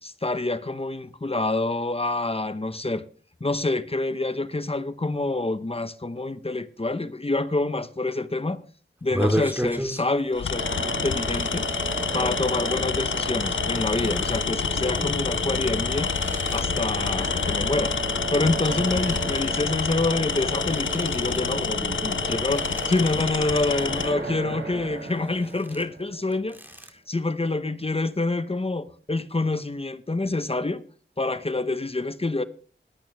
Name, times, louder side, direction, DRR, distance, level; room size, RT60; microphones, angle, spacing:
voice 1, 0.0-3.0 3.4-8.6 9.0-11.7 12.1-16.1 16.5-17.9 18.3-26.6 27.1-30.8 31.2-32.4, left 2 dB, 30° left, 1.0 m, -27 dB
sound 1, 9.0-10.3 10.6-10.8 11.2-12.7 13.3-18.1 18.3-19.6 20.4-21.7 22.0-23.2 23.6-24.3 24.7-26.9, equal, 10° right, 2.3 m, -35 dB
Tools, 9.2-9.5 10.3-24.2, left 6 dB, 70° left, 0.7 m, -28 dB
sound 2, 10.5-26.5, right 3 dB, 55° right, 4.5 m, -34 dB
21.0 x 8.7 x 3.5 m
cardioid pair, 45°, 21 cm